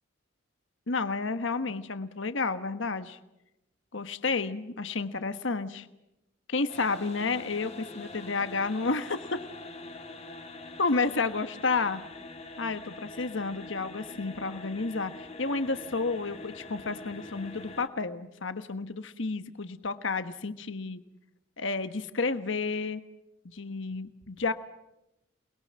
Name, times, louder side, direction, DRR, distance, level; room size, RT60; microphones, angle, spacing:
voice 1, 0.9-3.2 3.9-5.9 6.5-9.4 10.8-12.0 12.6-21.0 21.6-23.0 23.4-24.5, left 4 dB, 70° left, 10 dB, 1.3 m, -31 dB
sound 1, 6.7-17.9, left 2 dB, 30° left, 2.2 m, -44 dB
29.0 x 21.5 x 7.6 m, 0.89 s
head